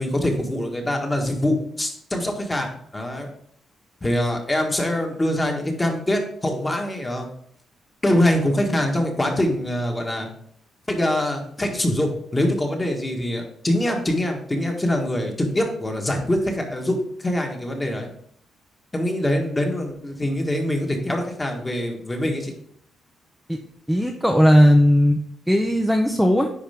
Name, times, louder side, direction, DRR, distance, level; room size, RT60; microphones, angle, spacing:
voice 1, 0.0-3.3 4.0-7.3 8.0-10.3 10.9-18.1 18.9-22.5, left 1 dB, 15° left, 2 dB, 1.6 m, -24 dB
voice 2, 23.9-25.2 25.5-26.5, equal, ahead, 2 dB, 0.7 m, -17 dB
9.9 x 4.4 x 3.6 m, 0.66 s
cardioid pair, 110°, 0 cm